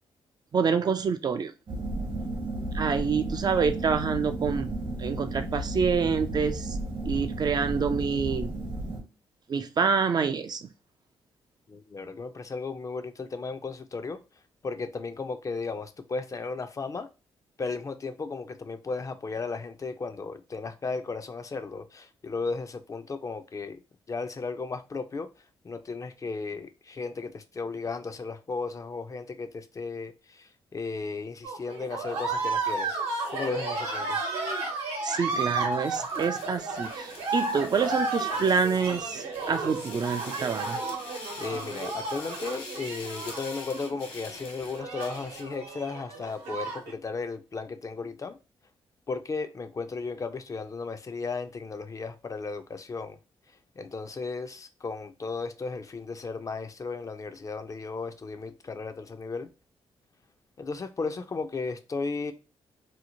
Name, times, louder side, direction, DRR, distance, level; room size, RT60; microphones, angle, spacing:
voice 1, 0.5-1.5 2.7-4.7 5.0-6.8 7.1-8.5 9.5-10.7 35.0-40.8, right 5 dB, 40° right, 0.3 m, -27 dB
sound 1, 1.7-9.0, right 1 dB, 60° right, 0.9 m, -33 dB
voice 2, 11.7-14.2 14.6-17.1 17.6-23.8 24.1-25.3 25.6-33.0 33.3-34.2 41.4-48.4 49.1-53.2 53.8-59.5 60.6-62.3, left 4 dB, 35° left, 0.4 m, -35 dB
sound 2, 31.4-46.9, right 3 dB, 80° right, 0.9 m, -33 dB
sound 3, 35.7-45.6, left 3 dB, 70° left, 1.2 m, -45 dB
2.7 x 2.0 x 2.8 m
supercardioid pair, 65°, 10 cm